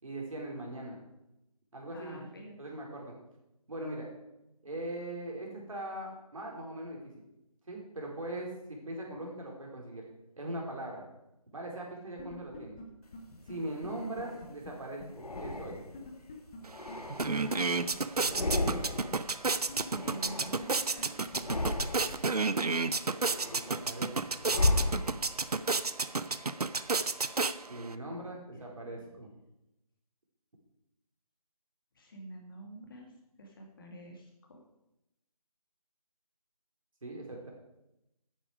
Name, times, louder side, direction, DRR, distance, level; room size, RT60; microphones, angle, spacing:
voice 1, 0.0-1.0 1.7-2.3 2.6-3.1 3.7-4.1 4.6-7.0 7.7-10.0 10.4-11.1 11.5-12.8 13.5-15.8 18.2-18.8 23.4-24.2 27.7-29.3 37.0-37.5, right 1 dB, 60° right, -1 dB, 3.9 m, -40 dB
voice 2, 1.9-2.6 19.7-21.6 28.5-28.6 32.0-33.1 33.4-34.6, right 1 dB, 35° left, 1 dB, 2.3 m, -48 dB
sound 1, 12.2-12.8 13.1-13.2 13.5-13.6 13.8-13.9 14.2-14.7 15.0-15.1 15.3-15.4 15.7-16.6 16.9-17.0 17.2-17.3 17.6-17.7 17.9-18.5 18.7-18.8 19.1-19.2 19.4-20.3 20.6-20.7 21.0-21.1 21.3-21.4, left 5 dB, 10° left, 0.6 m, -47 dB
sound 2, 13.3-14.5 15.1-16.1 16.6-17.8 18.1-19.3 19.5-20.9 21.3-22.3 22.8-25.5, left 2 dB, 80° left, 1.4 m, -34 dB
sound 3, 16.6-16.7 17.0-27.9, right 4 dB, 80° right, 0.7 m, -31 dB
10.0 x 9.0 x 4.9 m, 0.88 s
figure-of-eight pair, 160°, 19 cm